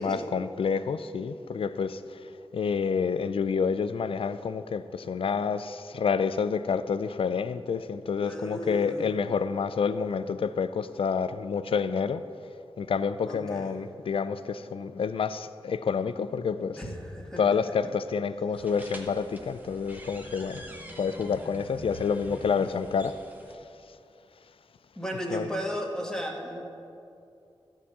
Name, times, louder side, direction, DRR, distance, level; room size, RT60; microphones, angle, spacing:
voice 1, 0.0-12.2 12.8-16.9 17.4-20.6 21.0-23.2 25.3-25.5, left 6 dB, 75° left, 0.4 m, -28 dB
voice 2, 8.2-9.1 13.3-13.7 16.8-17.4 25.0-26.6, equal, 5° left, 1.7 m, -35 dB
sound 1, 18.5-23.5, right 1 dB, 15° right, 1.2 m, -45 dB
12.5 x 4.8 x 7.2 m
wide cardioid pair, 65°, 9 cm